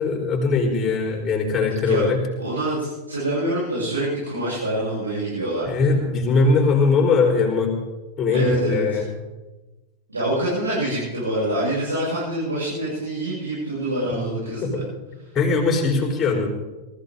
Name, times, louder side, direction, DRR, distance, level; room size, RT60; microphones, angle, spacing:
voice 1, 0.0-2.2 5.7-7.7 8.2-9.1 14.1-14.2 14.6-14.8 15.3-16.5, left 4 dB, 20° left, 1 dB, 4.4 m, -20 dB
voice 2, 2.4-5.7 8.3-9.0 10.1-14.8, right 1 dB, 80° right, -10 dB, 7.5 m, -25 dB
22.0 x 14.5 x 3.9 m, 1.1 s
figure-of-eight pair, 90°, 0 cm